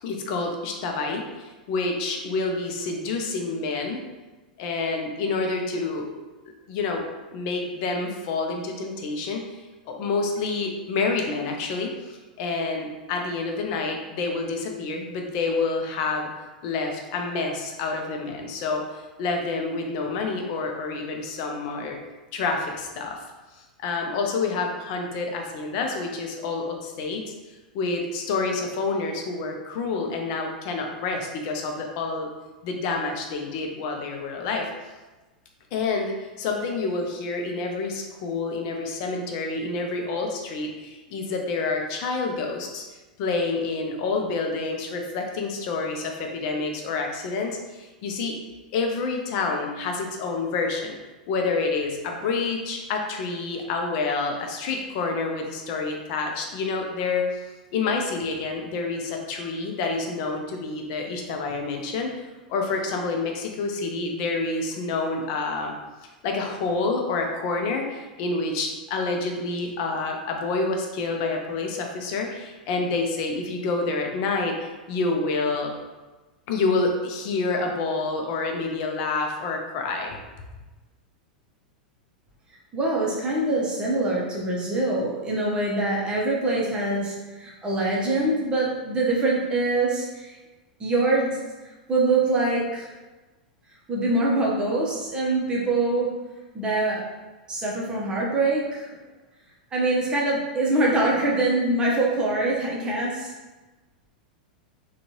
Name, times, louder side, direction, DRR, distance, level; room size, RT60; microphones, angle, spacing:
voice 1, 0.0-4.0 4.6-6.1 6.7-7.0 7.3-9.4 9.9-16.3 16.6-22.0 22.3-23.2 23.8-27.2 27.7-32.3 32.6-34.7 35.7-42.8 43.2-48.4 48.7-51.0 51.3-57.3 57.7-62.1 62.5-65.7 66.2-75.7 76.5-80.2, left 3 dB, 45° left, 2 dB, 0.6 m, -28 dB
voice 2, 82.7-90.4 90.8-91.4 91.9-92.9 93.9-96.1 96.5-97.1 97.5-98.9 99.7-103.3, right 2 dB, 20° right, -4 dB, 0.8 m, -24 dB
3.7 x 2.3 x 2.9 m, 1.2 s
figure-of-eight pair, 90°, 5 cm